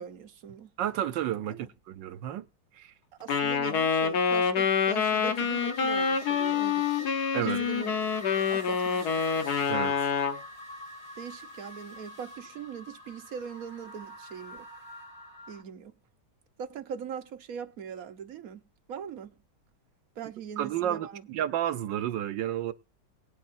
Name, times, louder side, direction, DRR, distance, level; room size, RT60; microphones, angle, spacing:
voice 1, 0.0-0.7 1.5-1.7 3.2-7.1 7.4-8.0 8.4-9.6 11.2-14.7 15.5-15.9 16.6-18.6 18.9-19.3 20.2-21.2, right 7 dB, 55° right, 1.4 m, -41 dB
voice 2, 0.8-2.5 2.7-2.9 7.3-7.6 9.7-10.1 20.6-22.7, right 11 dB, 80° right, 1.5 m, -31 dB
Wind instrument woodwind instrument, 3.3-10.4, left 6 dB, 65° left, 1.5 m, -27 dB
sound 1, 4.9-15.6, left 2 dB, 85° left, 5.3 m, -45 dB
22.0 x 9.3 x 2.6 m
omnidirectional pair, 1.9 m